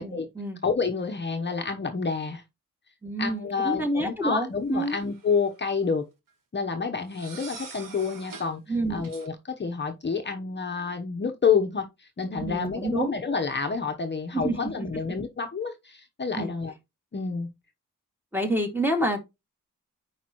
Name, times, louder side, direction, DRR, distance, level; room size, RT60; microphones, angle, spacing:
voice 1, 0.0-0.6 3.0-5.0 8.7-9.1 12.4-13.1 14.3-14.6 16.4-16.5 18.3-19.2, right 1 dB, 5° right, 2.2 m, -28 dB
voice 2, 0.6-2.4 3.2-6.1 6.5-8.6 8.9-16.7 17.1-17.5, left 5 dB, 35° left, 1.0 m, -28 dB
sound 1, 4.8-5.5 7.1-8.5 9.0-9.3, right 4 dB, 80° right, 2.3 m, -44 dB
9.2 x 5.0 x 3.0 m
wide cardioid pair, 125°, 32 cm